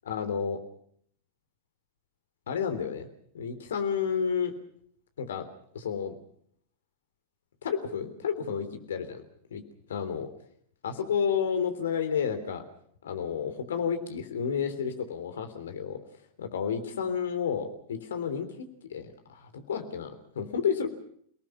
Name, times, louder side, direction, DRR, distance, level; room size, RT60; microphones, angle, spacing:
voice 1, 0.0-0.6 2.5-3.1 3.3-4.5 5.2-5.4 5.7-6.1 7.6-9.2 9.5-9.6 9.9-10.3 10.8-12.6 13.0-16.0 16.4-20.9, left 7 dB, 65° left, 8 dB, 3.4 m, -31 dB
29.5 x 18.5 x 6.1 m, 0.65 s
figure-of-eight pair, 90°, 0 cm